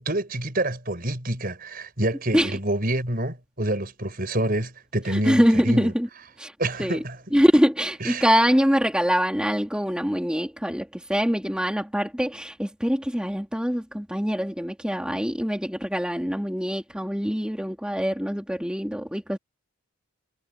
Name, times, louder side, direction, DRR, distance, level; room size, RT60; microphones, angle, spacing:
voice 1, 0.0-5.9 6.6-7.2 8.0-8.3, right 1 dB, 40° right, 5.3 m, -27 dB
voice 2, 5.1-6.1 6.4-6.5 6.8-7.0 7.3-19.4, equal, 5° right, 2.8 m, -24 dB
head